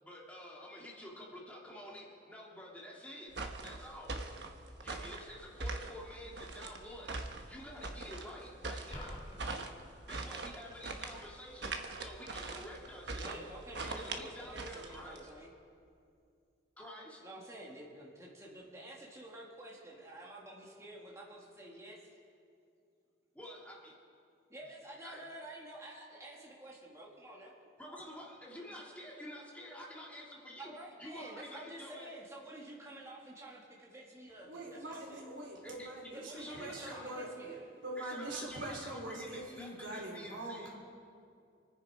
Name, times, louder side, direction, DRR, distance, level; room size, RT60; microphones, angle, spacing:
voice 1, 0.0-3.3 3.6-4.2 4.8-9.2 10.1-13.5 13.8-15.3 16.8-17.2 23.3-23.9 25.0-25.2 27.8-30.7 31.0-32.1 35.6-35.9 36.3-37.1 38.0-40.7, equal, 5° left, -4 dB, 2.1 m, -49 dB
sound 1, 3.3-15.3, right 3 dB, 65° right, 1.2 m, -42 dB
sound 2, 8.9-9.4, left 1 dB, 25° left, 2.3 m, -44 dB
voice 2, 13.1-15.5 17.2-22.1 24.5-27.5 30.6-35.3 36.1-37.7, right 1 dB, 15° right, -4 dB, 2.1 m, -50 dB
voice 3, 34.4-37.3 37.8-40.7, right 1 dB, 85° right, -1 dB, 3.6 m, -43 dB
27.0 x 10.0 x 4.9 m, 2.4 s
head